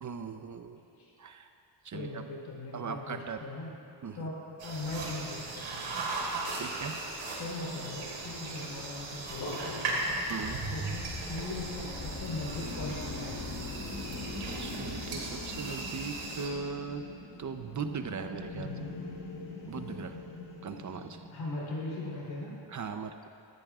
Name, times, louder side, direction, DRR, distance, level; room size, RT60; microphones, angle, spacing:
voice 1, 0.0-0.8 1.2-1.5 1.8-2.2 2.7-3.4 4.0-4.3 6.6-7.0 10.3-10.6 14.6-17.1 17.4-18.7 19.7-20.2 20.6-21.2 22.7-23.3, right 5 dB, 40° right, 7 dB, 0.7 m, -39 dB
voice 2, 0.7-1.1 1.9-3.7 4.1-5.9 7.4-10.0 10.7-13.5 18.5-19.0 21.3-22.5, left 2 dB, 90° left, -5 dB, 3.7 m, -39 dB
sound 1, 4.6-16.5, right 3 dB, 80° right, 3.4 m, -38 dB
sound 2, 6.4-11.0, left 1 dB, 45° left, 2.8 m, -47 dB
sound 3, 8.2-21.3, left 3 dB, 65° left, 3.1 m, -42 dB
20.0 x 15.0 x 2.4 m, 2.6 s
cardioid pair, 105°, 45 cm